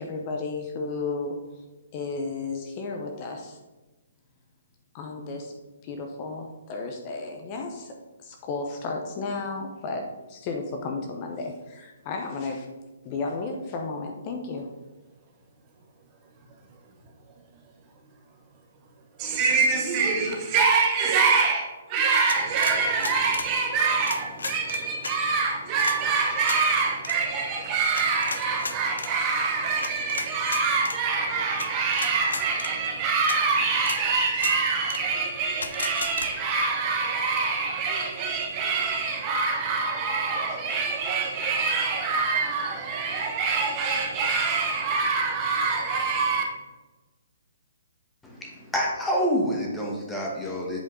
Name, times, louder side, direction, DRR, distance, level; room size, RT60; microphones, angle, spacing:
voice 1, 0.0-1.4 1.9-3.6 4.9-5.5 5.8-12.7 13.0-14.7, left 3 dB, 30° left, 0.7 m, -33 dB
voice 2, 19.2-46.4, right 4 dB, 25° right, 1.0 m, -25 dB
sound 1, 22.3-23.5 24.0-25.1 25.8-26.0 26.4-26.6 27.0-27.2 27.9-29.1 29.8-31.0 31.6-31.7 31.9-32.7 33.3-33.4 33.8-34.0 34.3-34.5 34.9-35.0 35.6-36.3, left 4 dB, 90° left, 0.6 m, -33 dB
voice 3, 48.2-50.8, equal, 5° left, 1.4 m, -27 dB
8.1 x 3.7 x 3.8 m
hypercardioid pair, 150°, 0 cm